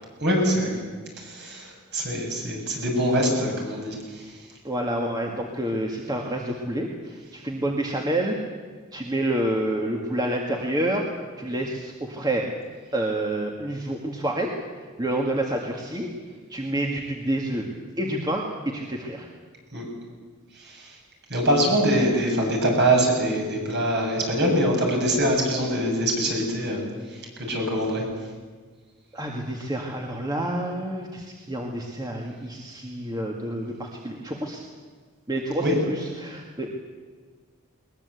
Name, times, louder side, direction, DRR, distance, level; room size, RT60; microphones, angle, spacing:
voice 1, 0.2-0.8 1.2-4.3 19.7-19.9 20.6-21.0 21.3-26.8 27.1-28.0 35.6-35.8, right 1 dB, 55° right, 0 dB, 7.6 m, -24 dB
voice 2, 4.6-8.4 8.9-11.1 11.4-12.5 12.9-14.5 15.0-16.1 16.5-17.7 18.0-19.3 29.1-34.6 35.3-36.7, right 1 dB, 20° right, 0 dB, 2.0 m, -28 dB
21.5 x 21.0 x 8.4 m, 1.5 s
head